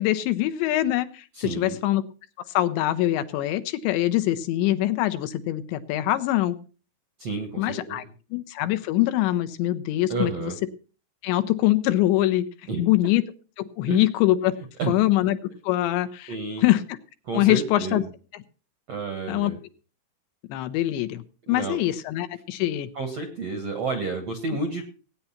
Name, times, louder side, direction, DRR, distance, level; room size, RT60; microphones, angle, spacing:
voice 1, 0.0-2.0 2.5-6.6 7.6-8.0 8.3-10.5 11.2-12.4 12.8-13.2 13.6-14.5 14.9-15.4 15.6-16.3 16.6-16.8 17.3-18.0 19.3-19.5 20.5-21.2 21.5-22.9, left 15 dB, 80° left, 11 dB, 2.9 m, -23 dB
voice 2, 1.3-1.8 7.2-8.1 10.1-10.6 12.7-12.8 13.9-14.0 14.8-14.9 16.3-16.7 17.2-18.0 18.9-19.6 21.5-21.8 22.9-24.8, right 3 dB, 65° right, 6 dB, 1.6 m, -30 dB
17.5 x 9.3 x 5.8 m, 0.37 s
omnidirectional pair, 5.5 m